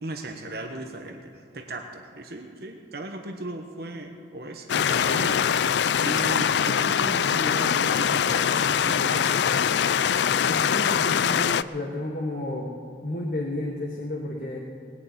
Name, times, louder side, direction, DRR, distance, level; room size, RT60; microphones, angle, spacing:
voice 1, 0.0-9.8, right 1 dB, 55° right, 3 dB, 1.1 m, -37 dB
sound 1, 4.7-11.6, left 8 dB, 65° left, 0.4 m, -23 dB
voice 2, 10.5-12.7 13.0-14.6, left 1 dB, 45° left, -1 dB, 1.5 m, -31 dB
20.0 x 7.6 x 9.2 m, 2.7 s
head